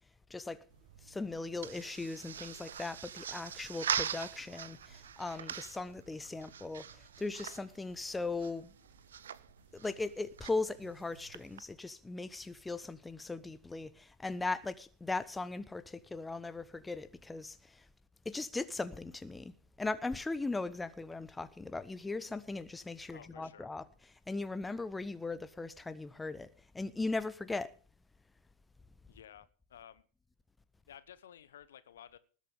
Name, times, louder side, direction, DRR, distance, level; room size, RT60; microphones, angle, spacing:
voice 1, 0.3-0.6 1.0-8.7 9.7-17.8 18.2-19.5 19.8-23.8 24.3-26.5 26.7-27.7, left 3 dB, 10° left, 0.8 m, -38 dB
sound 1, 0.7-11.6, right 8 dB, 65° right, 0.8 m, -43 dB
voice 2, 23.1-23.7 29.1-30.0 30.9-32.2, left 10 dB, 60° left, 1.1 m, -54 dB
19.5 x 8.4 x 5.4 m
figure-of-eight pair, 90°, 0 cm